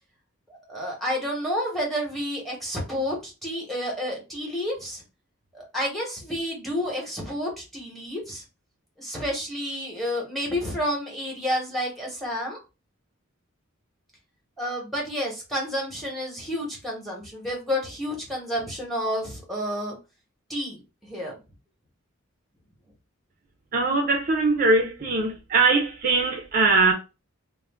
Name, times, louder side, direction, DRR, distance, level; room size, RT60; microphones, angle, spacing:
voice 1, 0.5-5.0 5.5-8.4 9.0-12.6 14.6-20.0 20.5-21.4, equal, ahead, 0.9 m, -30 dB
voice 2, 23.7-26.9, right 3 dB, 40° right, 0.4 m, -21 dB
2.5 x 2.0 x 3.2 m
head